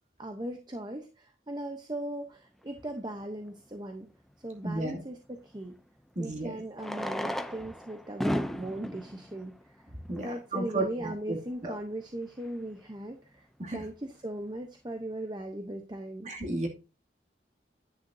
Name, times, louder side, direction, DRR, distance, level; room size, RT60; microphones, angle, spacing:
voice 1, 0.2-4.1 4.4-5.8 6.2-9.9 10.2-16.3, right 1 dB, 25° right, 5 dB, 0.9 m, -38 dB
Fireworks, 3.2-3.3 5.6-5.7 6.7-10.5 11.2-11.3 11.5-11.6 11.8-11.9 12.4-12.7, equal, ahead, 0.5 m, -35 dB
voice 2, 4.6-5.0 6.2-6.5 10.1-10.2 10.5-11.4 11.6-11.7 13.6-13.8 16.2-16.7, right 2 dB, 40° right, 1 dB, 2.5 m, -32 dB
10.0 x 9.3 x 2.7 m, 0.30 s
head